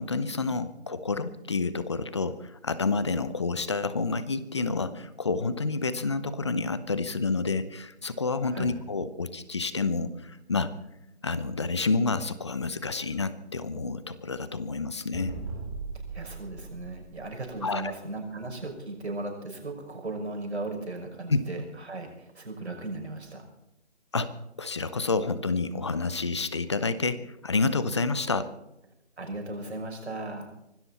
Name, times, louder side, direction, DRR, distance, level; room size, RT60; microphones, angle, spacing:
voice 1, 0.0-10.7 11.2-15.4 17.6-17.9 21.3-21.4 24.1-24.3 24.6-28.5, left 3 dB, 25° left, 14 dB, 0.7 m, -29 dB
voice 2, 8.5-8.8 16.1-23.5 29.2-30.5, right 2 dB, 75° right, 3 dB, 6.0 m, -37 dB
sound 1, 15.1-17.8, right 4 dB, 10° right, 2.6 m, -39 dB
24.0 x 13.0 x 4.2 m, 0.87 s
figure-of-eight pair, 160°, 33 cm